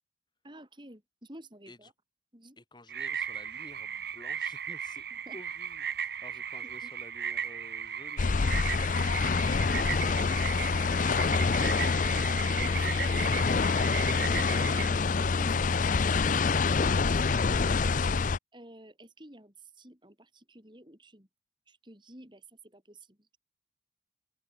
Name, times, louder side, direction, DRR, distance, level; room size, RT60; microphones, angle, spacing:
voice 1, 0.4-1.9 2.3-2.6 5.3-5.4 6.8-6.9 12.6-13.6 14.3-18.0 18.5-21.3 21.7-23.2, right 1 dB, 25° right, 4.8 m, -51 dB
voice 2, 2.6-5.1 5.3-12.0, left 1 dB, 25° left, 3.3 m, -53 dB
sound 1, 2.9-14.9, right 8 dB, 55° right, 2.8 m, -36 dB
sound 2, 8.2-18.4, left 4 dB, 40° left, 0.5 m, -26 dB
open air
head